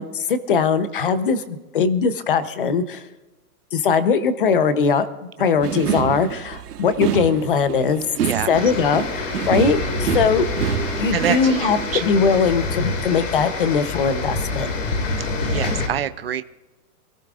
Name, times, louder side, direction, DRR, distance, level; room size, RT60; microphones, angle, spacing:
voice 1, 0.0-3.0 3.7-5.1 5.4-8.0 8.5-10.5 11.0-14.8, left 5 dB, 35° left, 12 dB, 0.7 m, -20 dB
sound 1, 5.6-11.4, right 9 dB, 80° right, 1.4 m, -27 dB
voice 2, 8.1-8.5 11.1-12.0 15.4-16.4, right 9 dB, 40° right, 11 dB, 0.4 m, -26 dB
sound 2, 8.5-15.9, left 3 dB, 55° left, 2.2 m, -26 dB
27.0 x 14.0 x 2.4 m, 1.1 s
hypercardioid pair, 180°, 47 cm